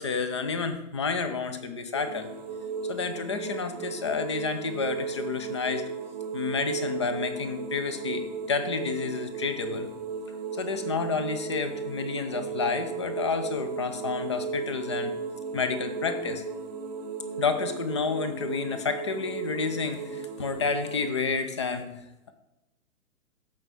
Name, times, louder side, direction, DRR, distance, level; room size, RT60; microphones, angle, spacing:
voice 1, 0.0-2.3 2.9-5.9 6.3-9.9 10.5-15.1 15.5-16.4 17.4-22.3, left 5 dB, 20° left, 9 dB, 0.5 m, -30 dB
sound 1, 1.9-21.1, right 5 dB, 30° right, 0.9 m, -35 dB
14.0 x 5.6 x 4.7 m, 0.93 s
figure-of-eight pair, 140°, 44 cm